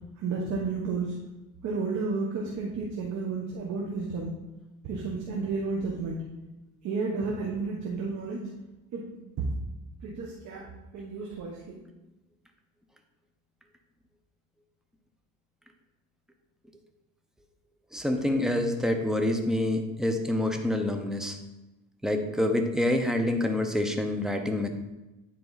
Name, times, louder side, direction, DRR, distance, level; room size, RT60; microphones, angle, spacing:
voice 1, 0.2-1.1 1.6-4.3 4.8-6.2 6.8-8.4 8.9-9.1 10.0-10.7 10.9-11.8, right 4 dB, 60° right, -2 dB, 1.4 m, -32 dB
voice 2, 17.9-21.4 22.0-24.7, left 1 dB, ahead, 4 dB, 0.9 m, -27 dB
9.7 x 4.3 x 4.1 m, 1.0 s
cardioid pair, 105°, 31 cm